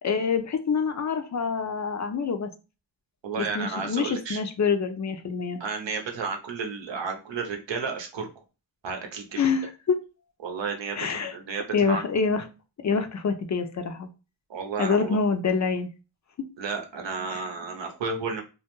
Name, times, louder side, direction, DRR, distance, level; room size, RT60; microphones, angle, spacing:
voice 1, 0.0-2.5 3.4-5.6 9.4-10.0 11.0-11.3 11.7-12.5 12.8-14.1 14.8-15.9 17.3-17.4, left 5 dB, 40° left, 7 dB, 0.4 m, -26 dB
voice 2, 3.2-4.4 5.6-8.3 8.8-9.5 10.4-12.1 14.5-15.2 16.6-18.4, right 5 dB, 75° right, 3 dB, 0.7 m, -32 dB
2.2 x 2.1 x 2.9 m, 0.31 s
cardioid pair, 45°, 45 cm